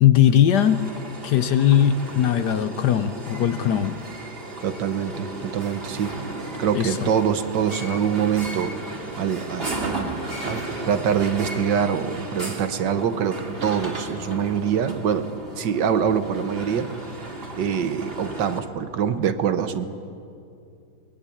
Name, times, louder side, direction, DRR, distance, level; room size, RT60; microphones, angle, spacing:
voice 1, 0.0-0.9 1.2-4.0 6.7-7.1, left 10 dB, 65° left, 11 dB, 1.1 m, -19 dB
sound 1, 0.5-18.6, right 2 dB, 30° right, 2.4 m, -35 dB
voice 2, 4.6-6.2 6.6-8.8 9.2-15.3 15.6-16.9 17.6-19.9, right 8 dB, 65° right, 10 dB, 1.6 m, -24 dB
23.5 x 21.0 x 8.5 m, 2.6 s
omnidirectional pair, 2.2 m